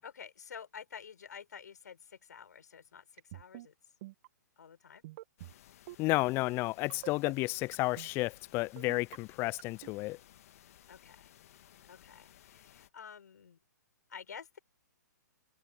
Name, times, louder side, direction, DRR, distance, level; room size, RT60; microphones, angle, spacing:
voice 1, 0.0-3.7 4.6-5.0 10.9-11.3 11.8-13.6 14.1-14.6, left 7 dB, 65° left, 6.7 m, -50 dB
sound 1, 3.2-3.7 4.0-4.3 5.0-5.5 5.9-6.1 6.9-7.3 7.7-8.1 8.8-9.2 9.6-9.9, right 17 dB, 40° right, 1.5 m, -46 dB
sound 2, 5.4-12.9, left 12 dB, 50° left, 1.7 m, -59 dB
voice 2, 6.0-10.2, left 21 dB, 25° left, 0.4 m, -32 dB
figure-of-eight pair, 125°, 10 cm